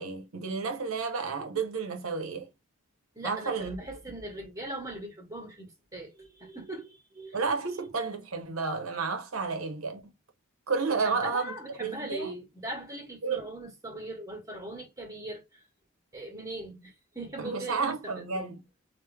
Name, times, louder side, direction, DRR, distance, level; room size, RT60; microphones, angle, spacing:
voice 1, 0.0-2.5 3.2-3.8 7.3-10.1 10.7-12.3 13.2-13.5 17.4-18.6, right 4 dB, 75° right, 0.9 m, -31 dB
voice 2, 3.1-7.4 7.7-7.8 11.0-15.7 16.1-18.4, right 1 dB, 15° right, 1.6 m, -40 dB
3.3 x 2.7 x 3.3 m
head